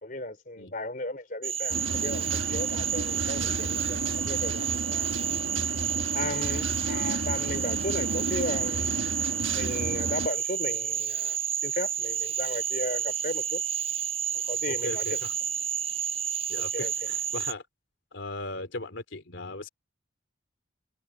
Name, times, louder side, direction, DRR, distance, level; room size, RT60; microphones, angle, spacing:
voice 1, 0.0-5.1 6.1-8.9 9.5-13.6 14.5-15.2 16.6-16.9, left 1 dB, 45° left, 3.7 m, -35 dB
Cricket / Frog, 1.4-17.5, right 9 dB, 30° right, 1.0 m, -30 dB
sound 1, 1.7-10.3, right 2 dB, 85° right, 1.4 m, -33 dB
voice 2, 14.7-15.3 16.5-17.6 18.1-19.7, left 2 dB, 75° left, 3.0 m, -38 dB
head